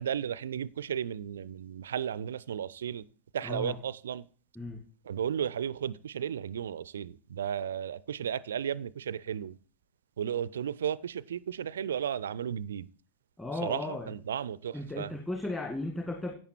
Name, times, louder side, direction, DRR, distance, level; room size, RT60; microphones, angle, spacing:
voice 1, 0.0-3.0 3.3-4.2 5.1-9.5 10.2-12.9 13.6-13.8 14.3-15.1, right 9 dB, 65° right, 0.4 m, -34 dB
voice 2, 3.4-3.8 4.6-4.8 13.4-14.1 14.7-16.4, left 2 dB, 10° left, 2.0 m, -35 dB
10.5 x 8.7 x 4.5 m
figure-of-eight pair, 90°, 0 cm